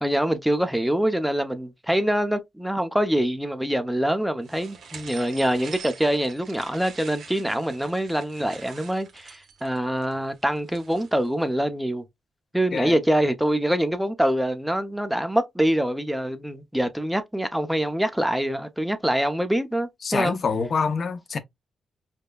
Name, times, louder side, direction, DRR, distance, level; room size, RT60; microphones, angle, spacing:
voice 1, 0.0-12.0 12.5-20.4, right 1 dB, 5° right, 0.7 m, -25 dB
sound 1, 4.4-11.3, right 6 dB, 75° right, 1.0 m, -45 dB
voice 2, 20.0-21.4, left 5 dB, 55° left, 0.6 m, -26 dB
5.2 x 2.1 x 2.3 m
cardioid pair, 75°, 0 cm